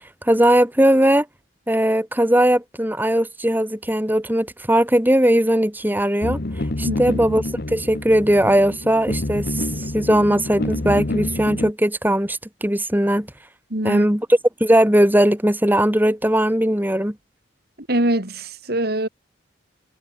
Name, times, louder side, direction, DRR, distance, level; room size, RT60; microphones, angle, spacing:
voice 1, 0.2-1.3 1.7-6.4 6.8-7.4 7.7-13.3 13.8-14.3 14.6-17.1, right 1 dB, 10° right, 2.3 m, -19 dB
sound 1, 6.2-11.7, left 1 dB, 55° left, 1.3 m, -27 dB
voice 2, 6.8-7.2 13.7-14.1 17.8-19.1, right 1 dB, 55° right, 3.2 m, -23 dB
head